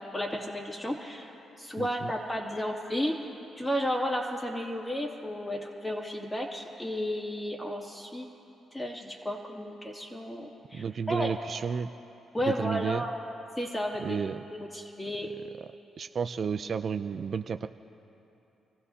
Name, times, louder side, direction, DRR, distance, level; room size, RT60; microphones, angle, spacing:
voice 1, 0.0-1.3 1.6-3.2 3.6-8.3 8.7-11.3 12.3-13.1 13.6-14.2 14.5-15.3, equal, 15° left, -1 dB, 2.7 m, -33 dB
voice 2, 1.8-2.1 10.7-11.9 12.4-13.0 14.0-14.4 16.0-17.7, right 6 dB, 55° right, 9 dB, 0.4 m, -32 dB
27.5 x 15.5 x 2.8 m, 2.9 s
cardioid pair, 70°, 0 cm